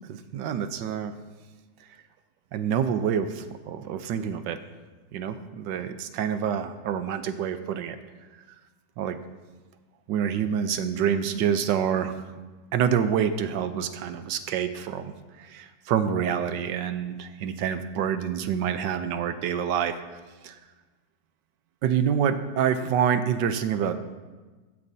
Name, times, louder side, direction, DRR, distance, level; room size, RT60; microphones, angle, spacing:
voice 1, 0.3-1.1 2.5-4.6 5.1-8.0 9.0-9.2 10.1-12.1 12.7-15.1 15.4-19.9 20.4-20.6 21.8-23.9, right 8 dB, 80° right, 10 dB, 1.3 m, -27 dB
16.5 x 9.2 x 2.7 m, 1.3 s
omnidirectional pair, 2.0 m